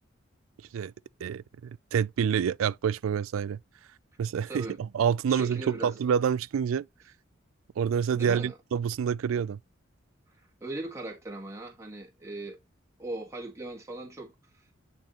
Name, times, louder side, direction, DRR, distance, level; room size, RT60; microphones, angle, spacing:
voice 1, 1.2-3.6 4.2-6.9 7.8-9.6, right 7 dB, 80° right, 0.3 m, -27 dB
voice 2, 4.5-4.8 5.3-5.9 8.1-8.6 10.3-12.6 13.0-14.8, right 2 dB, 15° right, 1.5 m, -39 dB
8.7 x 4.0 x 2.9 m
head